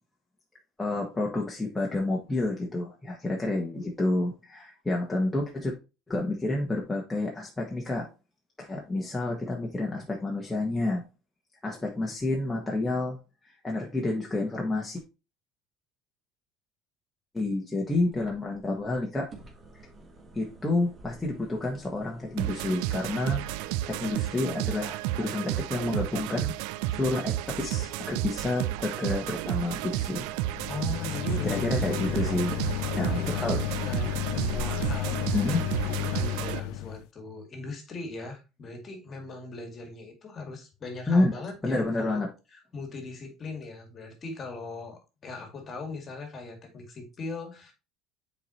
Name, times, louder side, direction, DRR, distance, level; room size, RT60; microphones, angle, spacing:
voice 1, 0.8-5.7 6.1-8.1 8.6-11.0 11.6-13.2 13.6-15.0 17.3-19.3 20.3-26.6 26.9-30.3 31.4-32.5 33.0-33.6 35.3-35.6 41.1-41.3 41.6-42.3, left 2 dB, 10° left, 1.4 m, -29 dB
sound 1, 18.1-35.0, right 2 dB, 30° right, 1.8 m, -49 dB
sound 2, 22.4-36.6, right 15 dB, 80° right, 0.3 m, -32 dB
sound 3, 30.4-37.0, left 17 dB, 80° left, 0.4 m, -32 dB
voice 2, 30.7-32.4 33.0-33.5 33.9-42.2 42.5-47.7, left 3 dB, 35° left, 2.1 m, -40 dB
7.1 x 4.4 x 3.1 m
cardioid pair, 120°, 0 cm